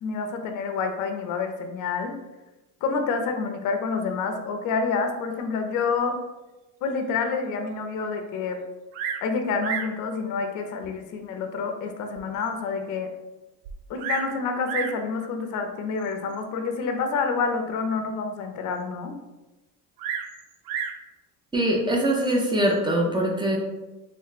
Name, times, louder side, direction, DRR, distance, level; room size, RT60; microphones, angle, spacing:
voice 1, 0.0-2.2 2.8-6.2 6.8-8.6 9.2-13.1 13.9-19.1, left 4 dB, 50° left, 6 dB, 0.6 m, -28 dB
Bird vocalization bird call bird song, 8.9-9.3 9.6-10.0 10.8-10.9 11.6-11.7 12.2-12.3 12.5-12.6 13.6-14.3 14.7-15.0 16.0-16.4 20.0-21.0 22.1-22.5, right 7 dB, 85° right, 0.5 m, -32 dB
voice 2, 21.5-23.6, right 1 dB, 10° right, -1 dB, 0.5 m, -23 dB
3.2 x 2.1 x 4.0 m, 1.0 s
cardioid pair, 125°, 40 cm